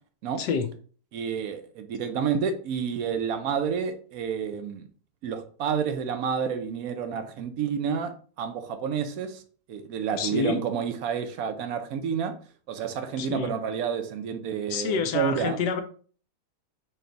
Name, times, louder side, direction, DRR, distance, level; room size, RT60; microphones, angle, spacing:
voice 1, 0.4-0.7 10.1-10.6 13.2-13.5 14.7-15.8, left 5 dB, 75° left, 8 dB, 1.1 m, -28 dB
voice 2, 1.1-4.8 5.2-8.1 8.4-9.4 9.7-12.3 12.7-15.6, right 7 dB, 70° right, 8 dB, 0.9 m, -29 dB
4.2 x 3.2 x 3.9 m, 0.42 s
omnidirectional pair, 2.0 m